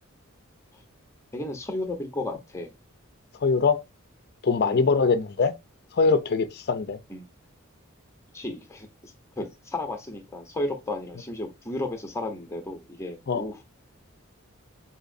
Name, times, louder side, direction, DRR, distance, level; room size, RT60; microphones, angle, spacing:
voice 1, 1.3-2.7 4.6-5.0 7.1-7.2 8.3-13.6, left 1 dB, 15° left, 0.8 m, -34 dB
voice 2, 3.4-3.8 4.4-5.5 5.9-7.0 13.3-13.4, left 4 dB, 50° left, 0.5 m, -22 dB
4.9 x 2.8 x 2.5 m
head